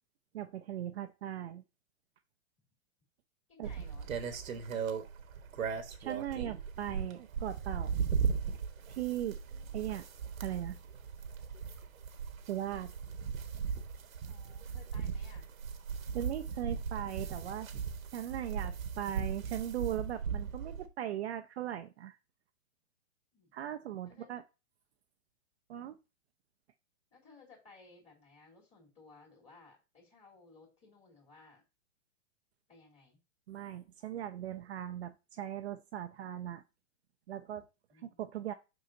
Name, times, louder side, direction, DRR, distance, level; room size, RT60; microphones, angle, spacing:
voice 1, 0.3-1.6 3.6-3.7 6.0-8.0 8.9-9.4 9.7-10.0 10.4-10.8 12.5-12.9 16.1-17.7 18.1-22.2 23.5-24.4 25.7-26.0 33.5-36.6 37.3-37.7 38.0-38.5, right 11 dB, 55° right, 8 dB, 0.5 m, -39 dB
voice 2, 3.5-5.1 9.5-10.0 14.2-15.5 23.3-24.4 27.1-31.6 32.7-33.2 37.9-38.5, left 4 dB, 15° left, -2 dB, 2.4 m, -60 dB
sound 1, 3.6-20.9, right 6 dB, 90° right, 1.2 m, -37 dB
6.5 x 5.5 x 2.6 m, 0.29 s
hypercardioid pair, 150°, 40 cm